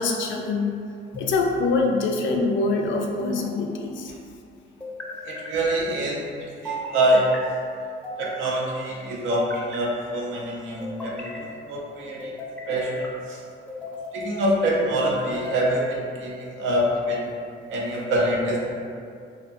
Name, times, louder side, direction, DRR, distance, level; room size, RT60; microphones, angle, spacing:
voice 1, 0.0-4.1, left 3 dB, 70° left, 2 dB, 0.4 m, -25 dB
sound 1, 1.1-1.8 3.2-3.9 4.8-5.6 6.6-7.4 8.0-8.7 9.3-10.2 10.8-11.4 12.2-13.1 13.7-14.2 15.0-15.8, equal, 5° left, 0.5 m, -36 dB
voice 2, 5.2-7.3 8.2-12.3 12.7-13.4 14.1-17.2 17.7-18.6, right 1 dB, 80° right, -3 dB, 0.6 m, -25 dB
2.5 x 2.5 x 2.5 m, 2.3 s
cardioid pair, 90°, 20 cm